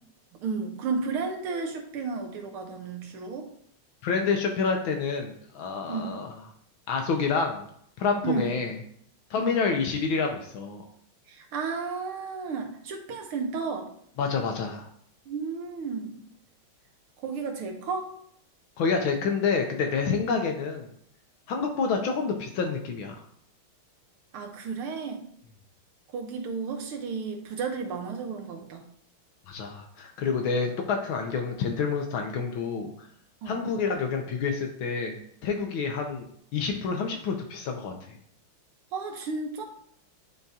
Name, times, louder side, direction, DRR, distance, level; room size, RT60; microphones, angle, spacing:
voice 1, 0.4-3.5 5.9-6.2 8.2-8.5 9.4-9.6 11.3-13.9 15.3-16.3 17.2-18.1 24.3-25.2 26.1-28.9 33.4-33.6 38.9-39.6, right 4 dB, 85° right, 3 dB, 1.9 m, -33 dB
voice 2, 4.0-6.3 6.9-7.6 8.0-8.8 9.3-10.8 14.2-14.8 18.8-20.9 21.5-23.2 29.5-33.1 33.5-35.2 35.4-36.3 36.5-37.9, left 5 dB, 75° left, 3 dB, 1.5 m, -28 dB
10.5 x 3.5 x 2.8 m, 0.66 s
omnidirectional pair, 2.3 m